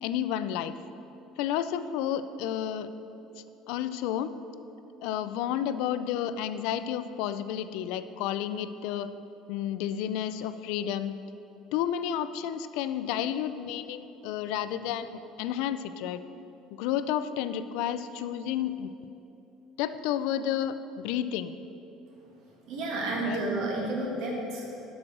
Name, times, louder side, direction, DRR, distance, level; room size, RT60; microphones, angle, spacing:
voice 1, 0.0-0.8 1.4-2.9 3.4-4.4 5.0-9.1 9.5-11.1 11.7-16.2 16.8-18.9 19.8-21.5 23.2-23.4, left 10 dB, 75° left, 13 dB, 0.4 m, -31 dB
voice 2, 22.6-24.8, right 2 dB, 60° right, -2 dB, 1.8 m, -31 dB
7.7 x 6.3 x 6.1 m, 2.9 s
cardioid pair, 175°, 0 cm